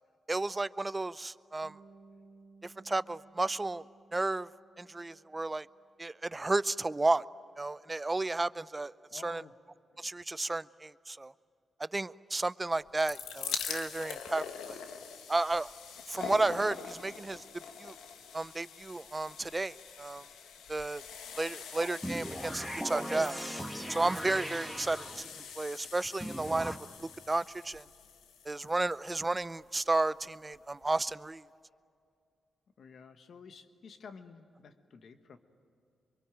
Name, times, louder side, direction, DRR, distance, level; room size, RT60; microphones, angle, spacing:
voice 1, 0.3-1.8 2.6-3.8 4.1-4.5 4.8-5.7 6.0-7.2 7.6-9.4 10.0-11.3 11.8-14.8 15.3-15.7 16.1-17.4 17.8-17.9 18.3-20.2 20.7-21.0 21.4-23.4 23.9-25.3 25.6-26.7 27.3-27.8 28.5-31.4, right 2 dB, 25° right, 0.6 m, -32 dB
Bass guitar, 1.6-5.7, right 3 dB, 85° right, 2.2 m, -59 dB
voice 2, 9.1-9.6 9.9-10.1 21.2-21.6 32.8-35.4, left 5 dB, 70° left, 1.5 m, -52 dB
sound 1, 12.7-29.8 30.5-30.6 30.8-30.9, left 7 dB, 90° left, 1.3 m, -44 dB
sound 2, 22.0-25.5 26.2-26.8, equal, 5° right, 1.4 m, -39 dB
25.0 x 23.5 x 9.2 m
supercardioid pair, 50°, 0 cm